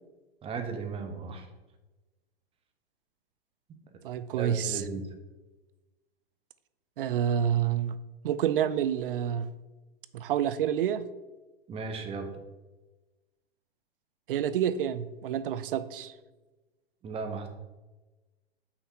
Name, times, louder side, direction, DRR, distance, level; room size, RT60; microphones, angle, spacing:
voice 1, 0.4-1.5 4.4-5.1 11.7-12.3 17.0-17.5, right 4 dB, 20° right, 5 dB, 0.9 m, -35 dB
voice 2, 4.0-4.8 7.0-8.0 8.2-9.5 10.1-11.0 14.3-16.1, right 9 dB, 60° right, 14 dB, 0.6 m, -28 dB
8.0 x 5.8 x 2.8 m, 1.1 s
hypercardioid pair, 110°, 30 cm